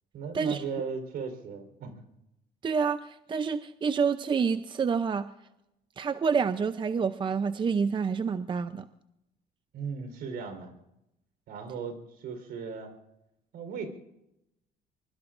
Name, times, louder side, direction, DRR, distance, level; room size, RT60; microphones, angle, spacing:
voice 1, 0.1-2.0 9.7-10.7 11.5-12.9 13.5-13.9, right 5 dB, 70° right, 6 dB, 4.1 m, -37 dB
voice 2, 2.6-5.3 6.0-8.9, right 5 dB, 30° right, 11 dB, 0.6 m, -28 dB
24.0 x 22.5 x 2.6 m, 0.86 s
cardioid pair, 110°, 17 cm